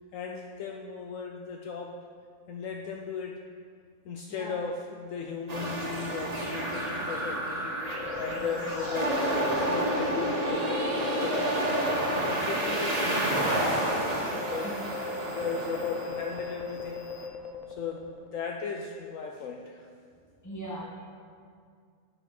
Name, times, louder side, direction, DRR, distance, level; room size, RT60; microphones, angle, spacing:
voice 1, 0.1-2.0 2.5-3.4 4.1-7.8 8.2-11.8 12.1-14.8 15.3-17.0 17.8-19.9, left 5 dB, 70° left, 1 dB, 0.9 m, -37 dB
sound 1, 5.5-17.3, right 1 dB, 30° right, 1.0 m, -30 dB
sound 2, 7.8-12.6 12.8-13.0 13.6-18.4, left 5 dB, 55° left, 0.5 m, -39 dB
voice 2, 8.3-8.6 14.6-14.7 20.4-20.8, equal, 15° left, -5 dB, 1.4 m, -40 dB
7.8 x 4.8 x 5.8 m, 2.2 s
omnidirectional pair, 1.5 m